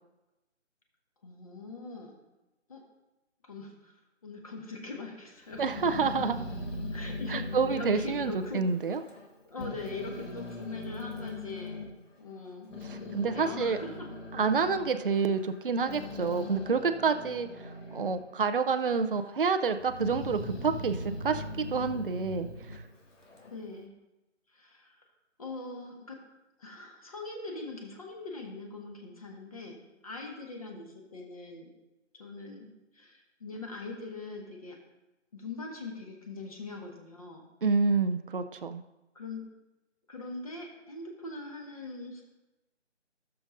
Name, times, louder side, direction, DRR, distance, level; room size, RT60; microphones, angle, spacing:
voice 1, 1.2-2.2 2.7-2.8 3.4-5.6 6.9-8.6 9.4-11.9 12.2-14.1 23.5-23.9 24.5-25.0 25.4-26.2 26.6-31.7 32.2-34.8 35.3-37.4 39.1-39.4 40.1-42.2, left 3 dB, 30° left, 1 dB, 1.5 m, -42 dB
Growling, 5.5-9.3 9.6-11.9 12.5-18.3 18.6-19.3 19.8-23.6, left 2 dB, 85° left, 2.2 m, -40 dB
voice 2, 5.6-6.5 7.3-9.0 12.8-13.8 14.3-22.8 37.6-38.8, right 5 dB, 50° right, 8 dB, 0.5 m, -28 dB
16.0 x 6.8 x 2.6 m, 1.0 s
figure-of-eight pair, 170°, 36 cm